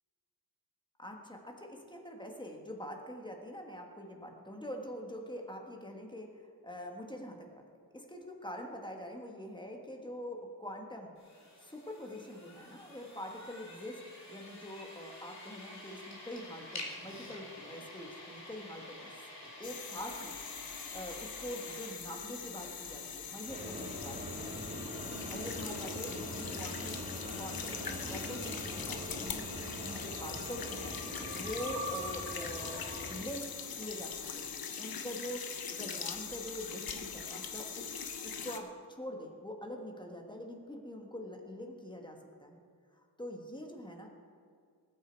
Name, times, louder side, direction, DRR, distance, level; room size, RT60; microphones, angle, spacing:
voice 1, 1.0-7.6 7.9-14.0 14.3-19.1 19.6-20.4 20.7-24.8 25.0-27.0 27.3-37.9 38.2-42.6 42.9-44.1, equal, 10° left, 1 dB, 1.6 m, -44 dB
sound 1, 11.2-21.9, left 1 dB, 40° left, 2.7 m, -49 dB
sound 2, 19.6-38.6, left 6 dB, 60° left, 1.0 m, -42 dB
sound 3, 23.5-33.2, equal, 15° right, 2.4 m, -42 dB
20.0 x 8.6 x 4.6 m, 2.3 s
wide cardioid pair, 135°, 40 cm